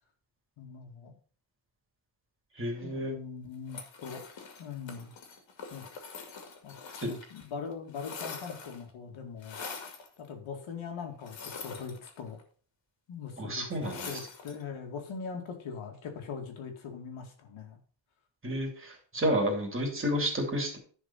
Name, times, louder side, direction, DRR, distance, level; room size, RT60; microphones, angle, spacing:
voice 1, 0.6-1.2 2.8-4.2 4.6-5.1 5.7-5.8 6.6-6.7 7.0-9.6 10.2-12.4 13.1-17.8, left 6 dB, 85° left, 3 dB, 2.3 m, -41 dB
voice 2, 2.6-3.1 7.0-7.1 13.4-14.1 18.4-20.8, equal, 25° right, 1 dB, 3.1 m, -30 dB
sound 1, 3.7-7.5 7.7-8.9 9.4-10.1 11.2-12.4 13.8-14.6, left 5 dB, 65° left, 2.4 m, -44 dB
10.5 x 4.7 x 5.6 m, 0.42 s
cardioid pair, 135°, 47 cm